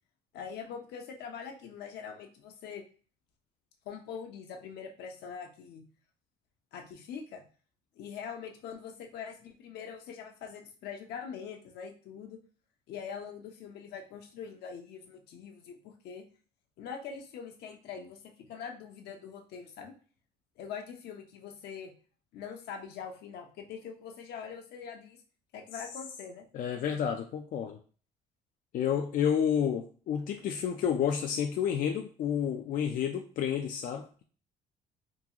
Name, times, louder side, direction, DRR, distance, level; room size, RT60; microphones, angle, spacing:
voice 1, 0.3-2.8 3.8-5.8 6.7-7.4 7.9-12.4 12.9-16.2 16.8-19.9 20.6-21.9 22.3-25.2 25.5-26.5, left 7 dB, 75° left, 3 dB, 0.8 m, -43 dB
voice 2, 26.5-27.8 28.7-34.2, left 8 dB, 55° left, 3 dB, 0.4 m, -30 dB
3.7 x 2.3 x 2.9 m, 0.40 s
cardioid pair, 110°, 17 cm